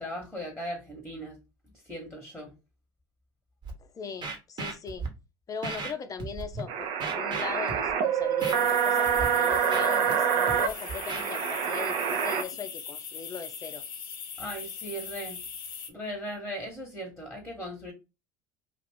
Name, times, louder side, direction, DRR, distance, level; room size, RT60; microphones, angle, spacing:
voice 1, 0.0-1.4 1.9-2.5 14.4-15.4 15.9-17.9, equal, ahead, 1.2 m, -38 dB
Scratching (performance technique), 3.6-3.7 4.2-5.1 5.6-5.9 6.2-6.6 7.0-7.9 8.4-8.5 9.1-9.3 9.5-10.1 10.5-11.2, right 4 dB, 40° right, 1.1 m, -36 dB
voice 2, 3.8-5.1 5.5-13.8, left 6 dB, 30° left, 0.5 m, -39 dB
sound 1, 6.7-12.4, right 8 dB, 55° right, 0.6 m, -26 dB
sound 2, 8.4-15.9, left 7 dB, 80° left, 0.6 m, -40 dB
2.5 x 2.5 x 3.4 m
hypercardioid pair, 75°, 12 cm